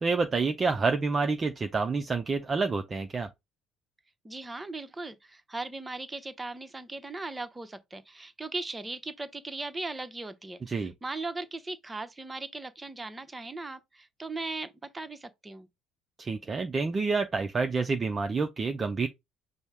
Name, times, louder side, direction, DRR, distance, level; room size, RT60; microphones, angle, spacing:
voice 1, 0.0-3.3 10.7-10.9 16.2-19.1, right 4 dB, 35° right, 0.5 m, -28 dB
voice 2, 4.2-15.7, right 2 dB, 20° right, 0.8 m, -38 dB
5.3 x 2.0 x 4.7 m
hypercardioid pair, 60°, 0 cm